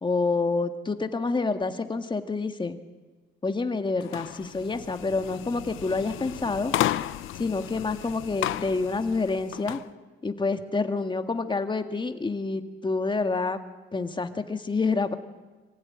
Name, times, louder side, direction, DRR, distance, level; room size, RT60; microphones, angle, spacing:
voice 1, 0.0-2.8 3.4-6.7 7.4-9.8 10.2-13.6 13.9-15.1, left 3 dB, 25° left, 8 dB, 1.8 m, -28 dB
sound 1, 4.0-9.9, left 14 dB, 85° left, 0.8 m, -33 dB
24.5 x 15.5 x 9.8 m, 1.3 s
cardioid pair, 90°, 20 cm